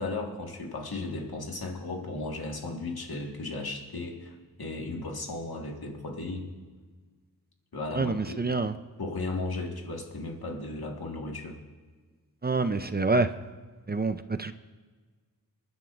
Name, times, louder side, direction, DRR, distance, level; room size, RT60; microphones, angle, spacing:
voice 1, 0.0-6.5 7.7-8.5 9.0-11.6, left 2 dB, 90° left, 1.8 m, -35 dB
voice 2, 7.9-8.8 12.4-13.3 13.9-14.5, right 3 dB, 25° right, 0.5 m, -27 dB
27.0 x 11.0 x 2.5 m
wide cardioid pair, 75°, 36 cm